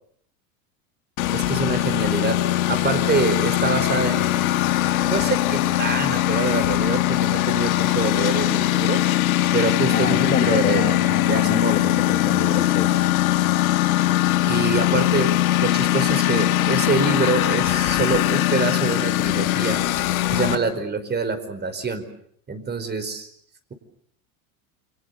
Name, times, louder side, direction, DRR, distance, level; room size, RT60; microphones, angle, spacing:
Engine, 1.2-20.6, left 14 dB, 80° left, 2.3 m, -21 dB
voice 1, 1.3-2.4 2.7-4.7 5.0-9.0 9.5-10.9 11.2-11.7 14.5-15.3 15.6-19.8 20.3-22.0 22.5-23.3, right 4 dB, 25° right, 9 dB, 4.8 m, -25 dB
voice 2, 9.9-12.9, left 6 dB, 20° left, 6 dB, 2.1 m, -28 dB
29.5 x 24.5 x 6.9 m, 0.65 s
hypercardioid pair, 100°, 41 cm